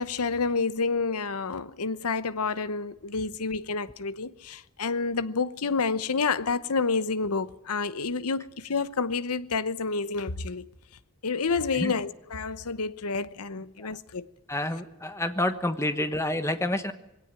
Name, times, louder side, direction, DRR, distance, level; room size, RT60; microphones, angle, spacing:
voice 1, 0.0-10.7 11.2-14.3, left 4 dB, 85° left, 0.9 m, -29 dB
voice 2, 14.5-16.9, left 1 dB, 10° left, 1.2 m, -28 dB
21.5 x 17.0 x 9.0 m
head